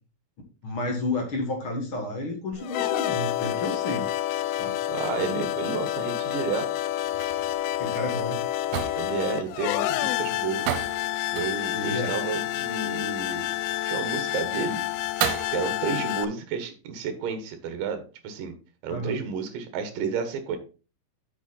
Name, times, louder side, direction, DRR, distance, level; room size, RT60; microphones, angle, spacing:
voice 1, 0.6-4.1 4.6-4.7 7.8-8.4 11.7-12.1 18.9-19.1, left 2 dB, 50° left, 2 dB, 1.6 m, -31 dB
sound 1, 2.5-16.3, left 13 dB, 85° left, 2.5 m, -29 dB
voice 2, 4.9-6.7 9.0-10.8 11.3-13.5 13.9-14.8 15.5-18.5 18.8-20.6, right 6 dB, 70° right, 8 dB, 2.8 m, -31 dB
sound 2, 6.8-15.6, right 11 dB, 85° right, 2.7 m, -36 dB
8.3 x 6.0 x 4.1 m, 0.35 s
omnidirectional pair, 4.4 m